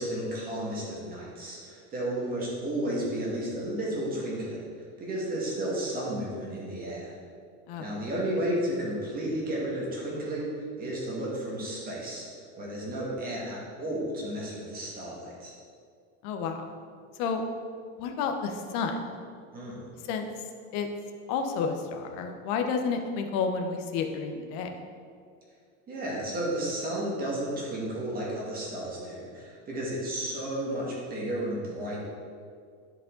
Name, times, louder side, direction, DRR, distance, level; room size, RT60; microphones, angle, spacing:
voice 1, 0.0-4.7 5.0-7.1 7.8-12.3 12.6-15.5 19.5-19.8 25.9-32.0, right 1 dB, 25° right, -5 dB, 2.0 m, -32 dB
voice 2, 16.2-16.6 17.2-17.4 18.0-19.2 20.1-20.3 20.7-20.9 21.3-24.7, left 5 dB, 60° left, 5 dB, 0.9 m, -30 dB
10.5 x 5.3 x 3.8 m, 2.2 s
cardioid pair, 155°, 35 cm